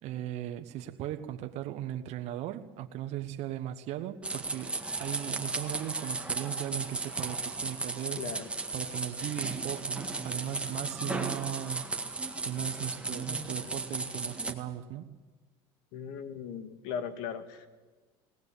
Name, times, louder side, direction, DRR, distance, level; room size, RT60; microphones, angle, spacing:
voice 1, 0.0-4.7 5.0-8.2 8.7-11.9 12.4-15.1, right 12 dB, 55° right, 7 dB, 1.3 m, -37 dB
sound 1, 4.2-14.5, right 3 dB, 10° right, 1.9 m, -35 dB
voice 2, 8.2-8.5 15.9-17.7, left 7 dB, 70° left, 10 dB, 2.0 m, -38 dB
20.5 x 18.5 x 8.5 m, 1.3 s
supercardioid pair, 110°, 13 cm